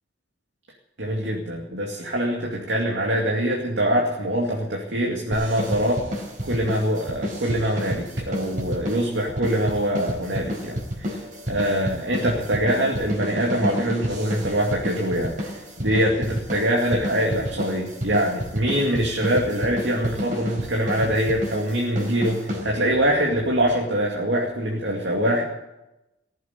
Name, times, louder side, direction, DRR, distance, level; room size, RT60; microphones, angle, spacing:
voice 1, 1.0-6.0 6.4-11.2 11.5-25.4, equal, 75° right, -2 dB, 2.5 m, -24 dB
sound 1, 5.3-23.1, equal, 50° right, 4.4 m, -31 dB
18.5 x 8.1 x 9.7 m, 0.96 s
head